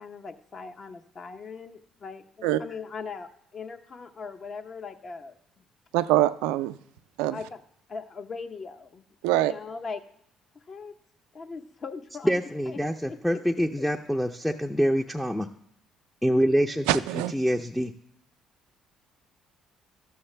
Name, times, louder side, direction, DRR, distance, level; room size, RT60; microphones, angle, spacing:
voice 1, 0.0-5.4 7.3-7.6 7.9-10.0 10.7-11.0 11.3-12.8 13.1-13.4 13.8-13.9, left 5 dB, 45° left, 7 dB, 0.8 m, -40 dB
voice 2, 5.9-6.8 7.2-7.4 9.2-9.5 16.9-17.3, right 14 dB, 80° right, 13 dB, 0.3 m, -24 dB
voice 3, 12.2-15.5 16.2-17.0 17.3-17.9, equal, 5° left, 4 dB, 0.5 m, -25 dB
12.5 x 7.0 x 3.3 m, 0.71 s
hypercardioid pair, 60°, 0 cm